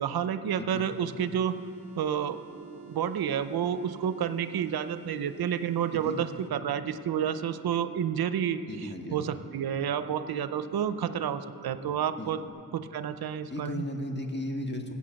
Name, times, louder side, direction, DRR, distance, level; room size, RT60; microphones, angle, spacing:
voice 1, 0.0-1.6 2.0-2.4 2.9-12.4 12.7-13.8, right 8 dB, 85° right, 12 dB, 0.6 m, -30 dB
sound 1, 0.8-6.6, right 7 dB, 40° right, 1.2 m, -50 dB
sound 2, 2.5-12.5, right 5 dB, 15° right, 1.5 m, -50 dB
voice 2, 8.7-9.4 12.2-12.3 13.5-14.9, left 1 dB, 30° left, 3 dB, 1.7 m, -35 dB
16.0 x 8.4 x 6.3 m, 2.6 s
cardioid pair, 55°, 36 cm